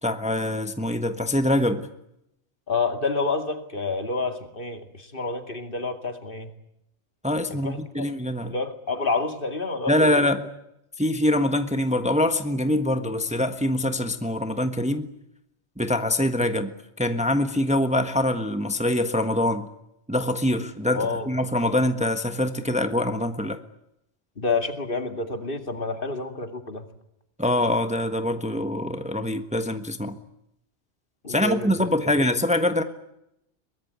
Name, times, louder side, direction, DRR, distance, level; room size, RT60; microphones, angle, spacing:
voice 1, 0.0-1.9 7.2-8.5 9.9-10.4 11.0-15.1 15.8-19.7 20.1-23.6 27.4-30.2 31.3-32.8, left 1 dB, 5° right, 8 dB, 1.4 m, -24 dB
voice 2, 2.7-6.5 7.6-8.1 8.5-10.3 20.9-21.3 24.4-26.9 31.2-32.3, left 3 dB, 50° left, 7 dB, 2.6 m, -29 dB
23.0 x 21.5 x 9.6 m, 0.80 s
omnidirectional pair, 1.2 m